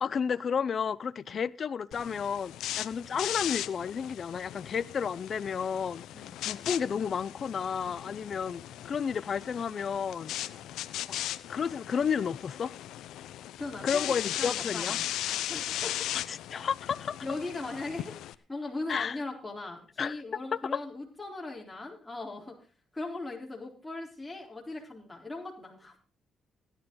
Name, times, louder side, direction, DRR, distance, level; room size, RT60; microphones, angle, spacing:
voice 1, 0.0-10.3 11.1-11.2 11.5-12.7 13.8-15.0 16.3-17.2 18.9-19.2 20.0-20.2 20.7-20.8, left 7 dB, 50° left, 0.6 m, -32 dB
sound 1, 1.9-18.3, left 13 dB, 85° left, 0.7 m, -38 dB
voice 2, 13.6-15.0 15.5-16.1 17.2-18.2 18.5-22.5 22.9-26.0, left 2 dB, 10° left, 4.1 m, -39 dB
16.5 x 11.5 x 3.9 m
cardioid pair, 90°, 0 cm